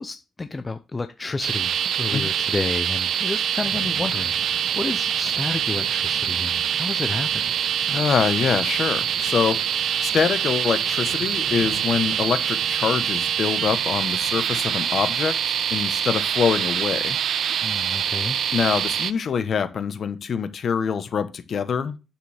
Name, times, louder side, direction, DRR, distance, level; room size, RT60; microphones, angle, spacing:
voice 1, 0.0-7.5 17.6-18.4, left 3 dB, 20° left, 0.6 m, -31 dB
sound 1, 1.4-19.1, right 9 dB, 60° right, 0.5 m, -25 dB
sound 2, 3.6-15.0, right 4 dB, 80° right, 1.7 m, -44 dB
voice 2, 7.9-17.2 18.5-22.0, left 6 dB, 45° left, 1.0 m, -25 dB
9.2 x 7.2 x 3.4 m
cardioid pair, 155°, 0 cm